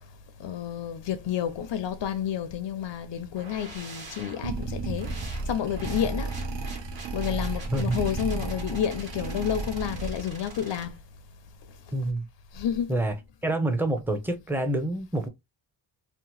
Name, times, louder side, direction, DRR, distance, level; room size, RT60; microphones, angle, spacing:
voice 1, 0.4-6.3 7.1-10.9 12.5-13.1, left 9 dB, 75° left, 0.5 m, -30 dB
sound 1, 3.4-10.9, right 2 dB, 55° right, 1.3 m, -45 dB
sound 2, 4.4-10.5, right 3 dB, 70° right, 0.7 m, -33 dB
voice 2, 11.9-12.3 12.9-13.1 13.4-15.3, right 1 dB, 5° right, 0.5 m, -27 dB
2.8 x 2.1 x 2.9 m
wide cardioid pair, 130°, 44 cm